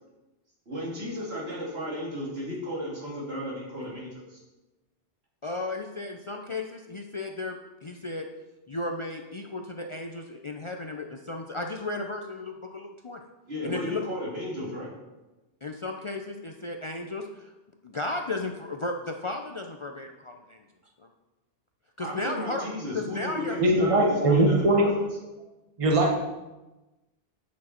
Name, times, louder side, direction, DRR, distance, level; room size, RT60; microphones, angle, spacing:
voice 1, 0.6-4.4 13.5-14.9 22.0-25.2, left 1 dB, 75° right, -6 dB, 3.2 m, -34 dB
voice 2, 5.4-8.3 8.7-13.2 13.6-14.0 15.6-17.5 17.8-20.6 21.0-21.1 22.0-22.7 22.9-23.6, left 2 dB, 40° left, 2 dB, 0.5 m, -34 dB
voice 3, 23.6-24.9 25.8-26.2, right 1 dB, 35° right, 0 dB, 1.2 m, -21 dB
9.4 x 6.4 x 4.4 m, 1.1 s
omnidirectional pair, 1.1 m